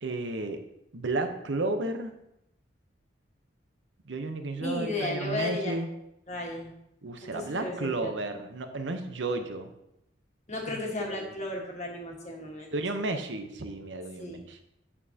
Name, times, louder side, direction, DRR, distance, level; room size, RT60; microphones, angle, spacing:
voice 1, 0.0-0.6 0.9-2.1 4.0-5.9 7.0-9.7 10.7-10.8 11.1-11.3 12.7-14.6, right 2 dB, 70° right, 7 dB, 0.9 m, -32 dB
voice 2, 4.6-5.8 6.3-6.7 7.2-8.1 10.5-12.7 14.2-14.4, left 2 dB, 40° left, -1 dB, 1.5 m, -34 dB
8.8 x 7.0 x 2.8 m, 0.82 s
head